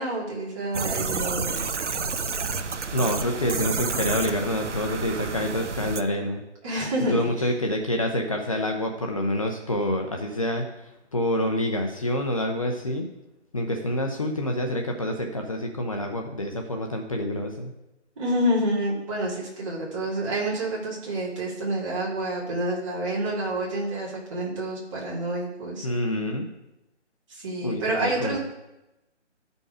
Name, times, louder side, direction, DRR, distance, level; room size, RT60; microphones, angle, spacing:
voice 1, 0.0-1.6 6.6-7.2 18.2-25.9 27.3-28.4, right 1 dB, 25° right, -5 dB, 3.1 m, -28 dB
sound 1, 0.7-6.0, right 5 dB, 85° right, 0.8 m, -30 dB
voice 2, 2.9-6.4 7.1-10.7 11.1-13.0 13.5-17.7 25.8-26.5 27.6-28.4, left 1 dB, 30° left, 3 dB, 0.8 m, -27 dB
12.0 x 5.3 x 4.9 m, 0.93 s
figure-of-eight pair, 165°, 35 cm